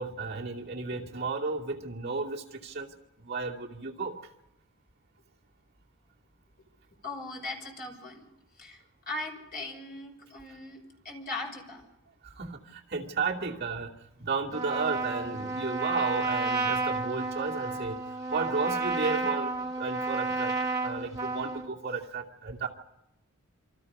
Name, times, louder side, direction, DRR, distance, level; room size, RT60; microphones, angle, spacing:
voice 1, 0.0-4.1 12.2-18.0 18.3-20.5 20.8-22.7, right 4 dB, 45° right, -3 dB, 2.5 m, -33 dB
voice 2, 7.0-8.2 8.6-11.8, left 2 dB, 40° left, 1 dB, 5.7 m, -39 dB
Trumpet, 14.5-21.7, right 3 dB, 15° right, 1.3 m, -31 dB
27.5 x 26.0 x 5.5 m, 0.89 s
head